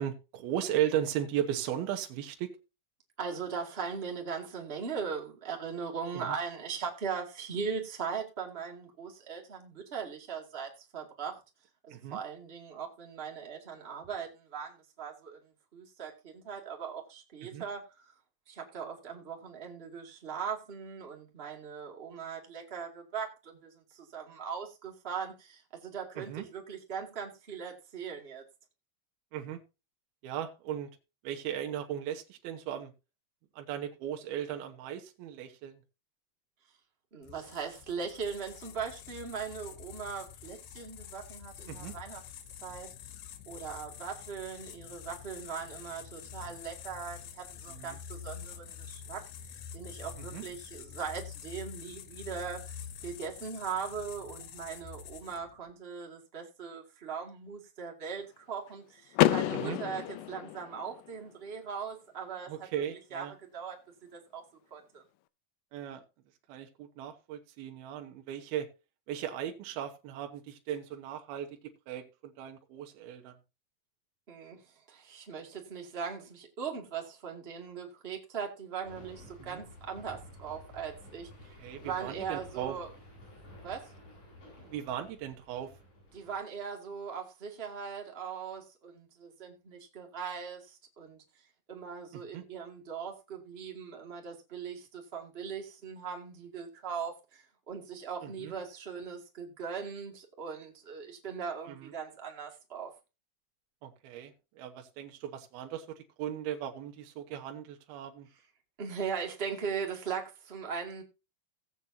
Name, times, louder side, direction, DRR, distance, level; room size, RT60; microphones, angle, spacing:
voice 1, 0.0-2.5 6.1-6.3 11.9-12.2 17.5-17.7 26.2-26.5 29.3-29.6 30.2-30.9 31.2-32.9 33.6-35.8 41.7-41.9 47.7-48.0 50.3-50.4 59.5-59.8 62.5-63.3 65.7-66.0 66.5-68.7 69.1-73.3 79.4-79.6 81.6-82.7 84.7-85.7 92.1-92.4 98.2-98.5 101.8-101.9 103.8-108.3, right 10 dB, 75° right, 2.9 m, -37 dB
voice 2, 3.2-11.4 11.8-18.1 18.5-28.4 37.1-42.2 42.6-43.1 43.4-49.2 49.7-62.5 63.1-63.8 64.1-64.4 64.7-65.0 74.3-82.9 83.6-83.9 86.1-91.4 91.7-102.9 108.8-111.0, right 6 dB, 20° right, 1.7 m, -40 dB
sound 1, 37.2-55.6, left 8 dB, 70° left, 2.4 m, -47 dB
Car / Door, 59.1-61.1, left 15 dB, 85° left, 1.8 m, -29 dB
sound 2, 78.8-86.4, left 1 dB, 55° left, 8.2 m, -52 dB
17.0 x 8.3 x 2.7 m
omnidirectional pair, 4.5 m